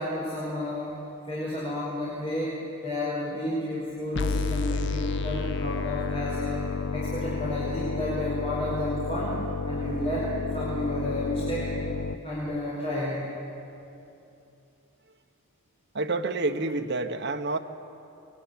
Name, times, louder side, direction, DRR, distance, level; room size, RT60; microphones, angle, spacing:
voice 1, 0.0-9.4 9.6-11.7 12.2-13.3, left 1 dB, 25° left, -6 dB, 4.9 m, -32 dB
sound 1, 4.2-12.2, left 3 dB, 50° left, 0.7 m, -30 dB
voice 2, 15.9-17.6, right 2 dB, 50° right, 5 dB, 1.3 m, -28 dB
24.0 x 22.0 x 9.5 m, 2.8 s
head